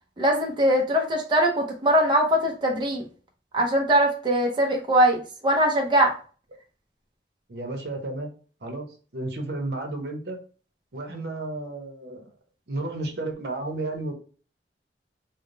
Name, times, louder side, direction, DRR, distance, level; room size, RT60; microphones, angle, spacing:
voice 1, 0.2-3.0 3.5-6.1, right 1 dB, 25° right, 0 dB, 0.6 m, -21 dB
voice 2, 7.5-8.3 8.6-10.4 10.9-12.2 12.7-14.1, right 2 dB, 65° right, 3 dB, 0.8 m, -32 dB
3.5 x 2.1 x 3.8 m, 0.39 s
head